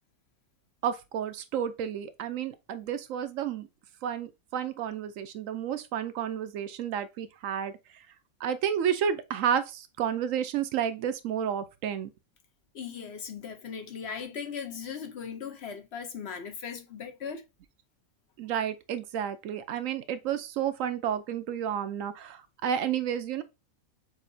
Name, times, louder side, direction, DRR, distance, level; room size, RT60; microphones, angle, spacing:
voice 1, 0.8-3.7 4.0-7.7 8.4-12.1 18.4-23.4, right 9 dB, 70° right, 0.9 m, -31 dB
voice 2, 12.7-17.4, left 6 dB, 55° left, 0.9 m, -38 dB
6.8 x 2.8 x 2.6 m
omnidirectional pair, 1.5 m